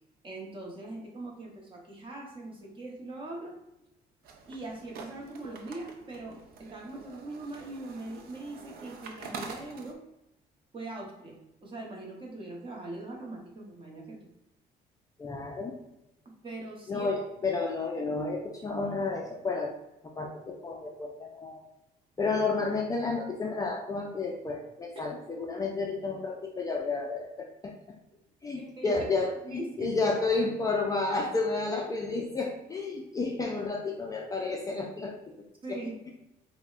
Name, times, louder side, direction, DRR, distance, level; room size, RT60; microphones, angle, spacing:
voice 1, 0.2-3.5 4.5-10.0 10.7-14.2 16.2-17.1 28.6-28.9 29.4-29.9 35.6-36.0, right 2 dB, 30° right, -1 dB, 0.9 m, -41 dB
sound 1, 4.2-9.9, right 4 dB, 65° right, 0.5 m, -46 dB
voice 2, 15.2-15.7 16.9-19.7 20.0-21.6 22.2-27.7 28.4-35.1 35.7-35.8, left 3 dB, 20° left, 0 dB, 0.4 m, -31 dB
5.1 x 2.1 x 2.4 m, 0.89 s
cardioid pair, 110°, 17 cm